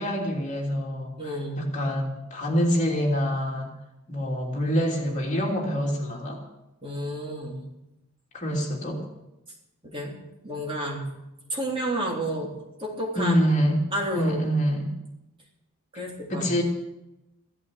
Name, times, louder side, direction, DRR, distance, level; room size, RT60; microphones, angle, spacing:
voice 1, 0.0-3.7 4.1-6.4 8.3-9.0 13.1-13.8 14.1-14.9 16.3-16.6, equal, 35° left, -1 dB, 3.1 m, -26 dB
voice 2, 1.2-1.7 6.8-7.7 9.9-10.2 10.4-11.1 11.5-12.5 12.8-13.4 13.9-14.5 15.9-16.6, right 1 dB, 25° right, -2 dB, 3.5 m, -30 dB
16.0 x 13.5 x 6.6 m, 0.93 s
head